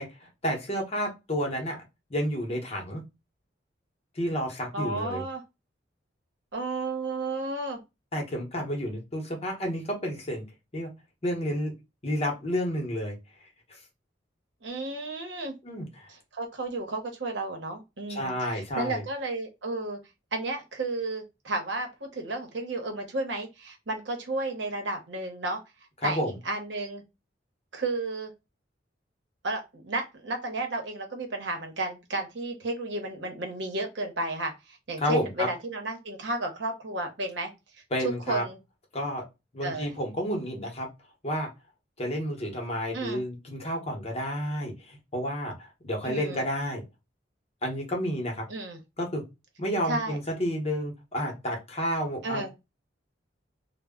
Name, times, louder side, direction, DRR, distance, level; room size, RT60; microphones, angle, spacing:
voice 1, 0.0-1.8 2.1-3.0 4.2-5.2 8.1-10.4 10.7-10.9 11.2-11.7 12.0-13.2 15.6-16.1 18.1-19.0 26.0-26.3 35.0-35.5 37.9-38.4 38.9-39.2 39.5-40.9 41.2-41.5 42.0-46.8 47.6-48.4 49.0-49.2 49.6-52.5, equal, 35° left, 0.8 m, -30 dB
voice 2, 4.7-5.4 6.5-7.8 14.6-15.5 16.3-20.0 20.3-25.6 26.0-27.0 27.7-28.3 29.4-37.5 38.0-38.6 39.6-39.9 42.9-43.2 46.0-46.4 48.5-48.8 49.9-50.2 52.2-52.5, right 2 dB, 70° right, 0.8 m, -32 dB
2.0 x 2.0 x 3.5 m
head